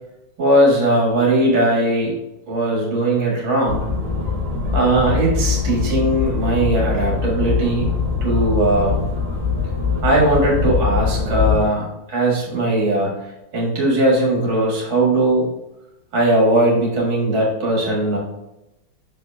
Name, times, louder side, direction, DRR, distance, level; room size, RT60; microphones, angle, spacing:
voice 1, 0.4-2.2 2.5-3.8 4.7-7.9 8.2-9.0 10.0-13.1 13.5-15.5 16.1-18.2, right 1 dB, 65° right, -3 dB, 2.6 m, -18 dB
sound 1, 3.7-11.6, left 5 dB, 30° right, 1.9 m, -22 dB
6.5 x 4.2 x 3.4 m, 0.92 s
omnidirectional pair, 2.3 m